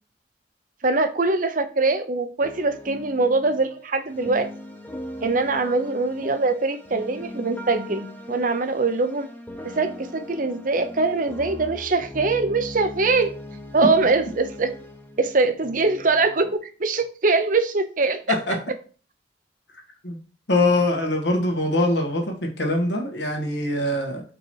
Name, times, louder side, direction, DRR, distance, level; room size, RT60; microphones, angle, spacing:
voice 1, 0.8-4.5 5.2-9.3 9.7-13.3 13.7-14.7 15.2-18.4, right 3 dB, 50° right, 9 dB, 0.8 m, -22 dB
sound 1, 2.4-16.5, equal, 10° left, 1.0 m, -39 dB
voice 2, 20.5-24.2, left 1 dB, 70° left, 2 dB, 1.8 m, -23 dB
5.4 x 4.5 x 4.6 m, 0.38 s
head